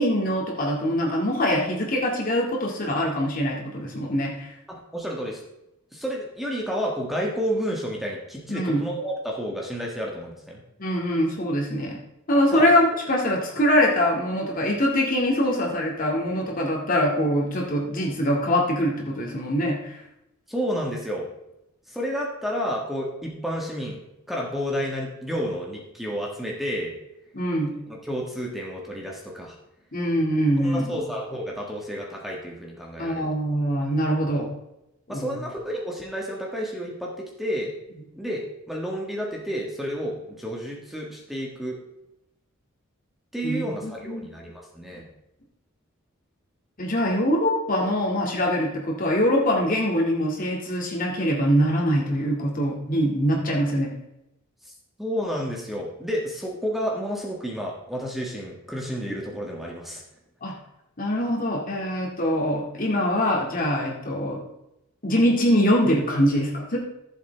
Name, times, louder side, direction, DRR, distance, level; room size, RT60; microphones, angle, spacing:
voice 1, 0.0-4.5 8.5-8.8 10.8-12.0 12.3-20.0 27.3-27.7 29.9-30.9 33.0-34.5 35.1-35.4 43.4-44.3 46.8-53.9 60.4-60.5 61.0-64.4 65.0-66.8, equal, 40° left, -2 dB, 2.1 m, -23 dB
voice 2, 4.7-5.4 5.9-10.6 12.5-12.7 20.5-21.3 21.9-24.0 24.3-26.9 27.9-29.5 30.6-33.3 35.1-37.7 38.1-41.8 43.3-45.1 54.6-54.7 55.0-60.0, equal, ahead, -2 dB, 1.5 m, -30 dB
15.0 x 7.3 x 3.4 m, 0.88 s
head